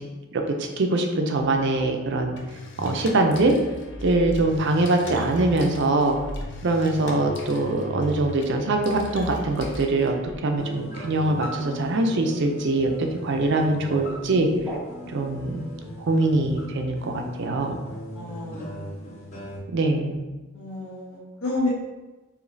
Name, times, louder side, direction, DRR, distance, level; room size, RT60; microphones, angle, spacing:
voice 1, 0.3-2.4 2.8-3.5 4.0-6.2 6.6-14.5 15.1-15.6 16.1-17.8 19.7-20.2, right 2 dB, 55° right, 4 dB, 0.4 m, -23 dB
sound 1, 2.4-10.4, left 1 dB, 55° left, 0.5 m, -37 dB
sound 2, 10.6-19.6, left 1 dB, 30° left, 0.8 m, -39 dB
sound 3, 13.4-15.3, right 1 dB, ahead, 0.5 m, -38 dB
voice 2, 15.3-16.1 18.1-19.4 20.5-21.7, left 2 dB, 75° left, -5 dB, 1.3 m, -32 dB
4.9 x 2.9 x 2.6 m, 1.2 s
head